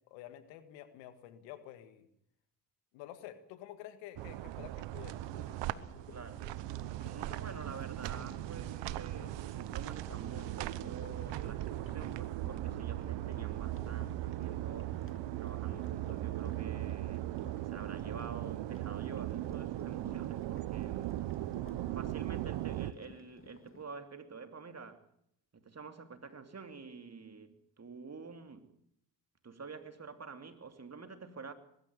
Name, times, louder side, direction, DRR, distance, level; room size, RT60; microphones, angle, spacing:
voice 1, 0.1-2.1 2.9-5.2, left 12 dB, 85° left, 1.9 m, -49 dB
sound 1, 4.2-22.9, right 15 dB, 75° right, 1.0 m, -38 dB
sound 2, 5.2-23.8, left 3 dB, 30° left, 2.9 m, -55 dB
voice 2, 6.1-6.5 7.0-15.0 15.3-17.3 17.6-21.2 21.9-25.1 25.5-28.7 29.4-31.5, right 5 dB, 35° right, 3.0 m, -48 dB
21.5 x 13.5 x 9.8 m
hypercardioid pair, 50°, 44 cm